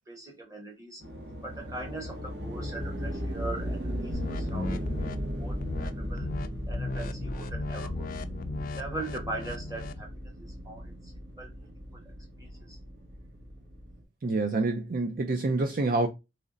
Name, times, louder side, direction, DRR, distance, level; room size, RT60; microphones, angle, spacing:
voice 1, 0.1-1.0 1.4-5.1 5.4-6.3 6.7-8.1 8.8-11.1 11.4-11.5 11.9-12.0 12.4-12.8, right 2 dB, 20° right, 1.3 m, -41 dB
sound 1, 1.0-14.0, equal, 65° right, 1.3 m, -36 dB
sound 2, 4.1-5.2 5.6-5.9 6.2-6.5 6.7-10.0, left 3 dB, 50° left, 0.4 m, -36 dB
voice 2, 14.2-16.1, right 3 dB, 50° right, 0.5 m, -27 dB
3.1 x 2.7 x 3.8 m
head